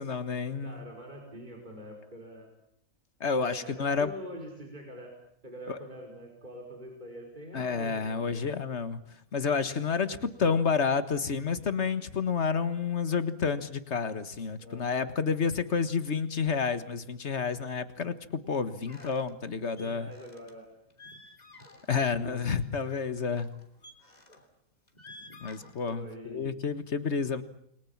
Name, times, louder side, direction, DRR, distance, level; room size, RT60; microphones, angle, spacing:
voice 1, 0.0-0.8 3.2-4.1 5.7-5.8 7.5-9.0 9.3-20.1 21.9-23.5 25.4-27.4, left 5 dB, 50° left, 11 dB, 1.8 m, -30 dB
voice 2, 0.6-2.5 3.4-5.1 5.4-8.3 14.6-14.9 18.0-18.2 19.0-19.1 19.8-20.7 21.9-22.4 25.9-26.6, equal, 30° right, 0 dB, 5.4 m, -44 dB
sound 1, 18.9-19.3 19.8-20.5 20.9-22.1 22.4-22.7 23.4-24.5 24.9-26.2, left 2 dB, 30° left, 3.4 m, -52 dB
29.5 x 22.5 x 7.4 m, 0.71 s
omnidirectional pair, 1.5 m